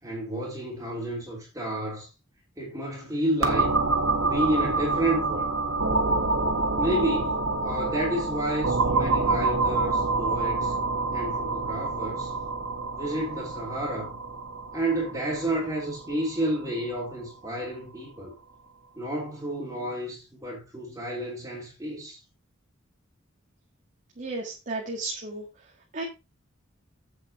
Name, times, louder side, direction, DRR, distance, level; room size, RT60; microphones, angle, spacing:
voice 1, 0.0-2.1 2.6-3.8 4.2-5.5 6.8-10.7 11.1-12.3 12.9-14.2 14.7-18.3 19.0-22.2, right 1 dB, 15° right, 3.4 m, -30 dB
sound 1, 3.4-17.0, right 3 dB, 70° right, 1.9 m, -27 dB
voice 2, 24.2-25.4 25.9-26.0, right 3 dB, 40° right, 1.9 m, -33 dB
8.2 x 7.9 x 4.3 m
head